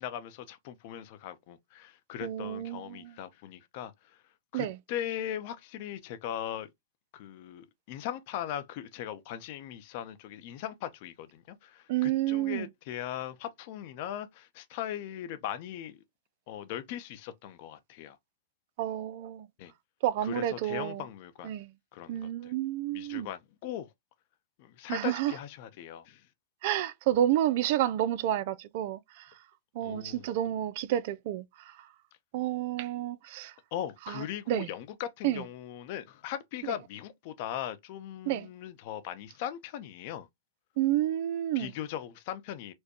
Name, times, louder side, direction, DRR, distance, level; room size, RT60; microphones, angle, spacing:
voice 1, 0.0-4.2 4.5-6.7 7.1-16.0 16.5-18.2 19.6-19.7 20.2-21.5 21.9-22.5 22.9-23.9 24.6-26.2 29.8-30.3 33.7-40.3 41.5-42.7, left 11 dB, 50° left, 0.7 m, -39 dB
voice 2, 2.2-3.1 4.5-4.8 11.9-12.7 18.8-19.5 20.0-21.0 21.4-21.7 22.1-23.3 24.9-25.3 26.6-29.2 29.7-31.4 32.3-33.5 34.1-34.7 35.2-35.4 38.3-38.5 40.8-41.7, right 12 dB, 55° right, 0.4 m, -30 dB
4.5 x 2.2 x 2.9 m
hypercardioid pair, 125°, 0 cm